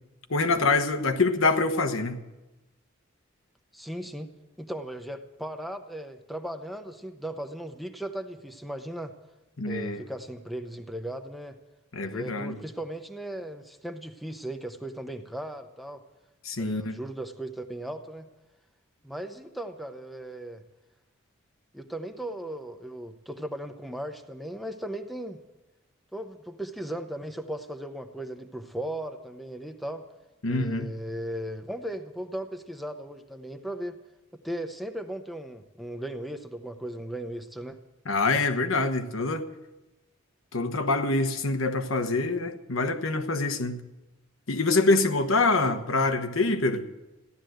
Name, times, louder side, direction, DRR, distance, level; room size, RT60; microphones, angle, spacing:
voice 1, 0.3-2.2 9.6-10.0 11.9-12.6 16.4-17.0 30.4-30.9 38.1-39.5 40.5-43.8 44.5-46.8, left 3 dB, 75° left, 1.2 m, -25 dB
voice 2, 3.7-4.3 4.6-9.1 9.6-11.6 12.0-16.0 16.6-18.3 19.0-20.6 21.7-25.4 26.1-30.0 30.5-34.0 34.4-37.8 45.6-45.8, right 1 dB, ahead, 0.7 m, -37 dB
15.0 x 11.5 x 7.8 m
head